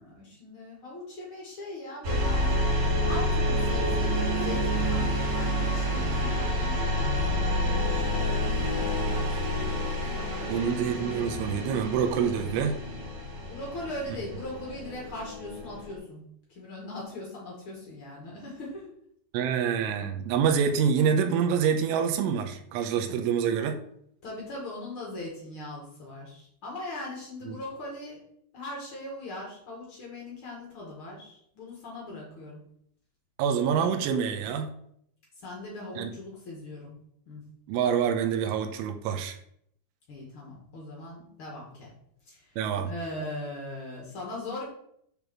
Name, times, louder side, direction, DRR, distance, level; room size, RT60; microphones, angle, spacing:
voice 1, 0.0-2.6 3.0-10.6 13.5-16.2 16.5-18.9 24.2-28.2 28.5-32.6 35.4-36.9 37.2-37.4 40.1-41.9 42.2-42.5 42.8-44.7, left 2 dB, 80° left, -4 dB, 1.1 m, -40 dB
sound 1, 2.0-16.0, equal, 55° right, 2.6 m, -28 dB
voice 2, 10.5-12.8 19.3-23.8 27.5-27.6 33.4-34.7 36.0-36.1 37.7-39.4 42.6-42.9, right 7 dB, 85° right, 5 dB, 3.3 m, -26 dB
9.5 x 3.6 x 6.1 m, 0.71 s
omnidirectional pair, 5.5 m